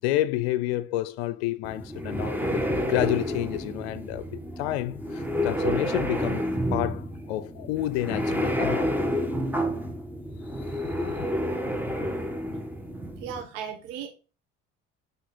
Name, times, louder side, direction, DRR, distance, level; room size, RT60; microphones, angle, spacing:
voice 1, 0.0-6.4 6.7-8.9 10.7-11.3, left 15 dB, 85° left, 0.5 m, -29 dB
sound 1, 1.6-13.4, equal, 5° right, 1.5 m, -29 dB
voice 2, 13.2-14.1, right 8 dB, 80° right, 1.4 m, -36 dB
8.1 x 4.0 x 4.3 m
hypercardioid pair, 65°, 31 cm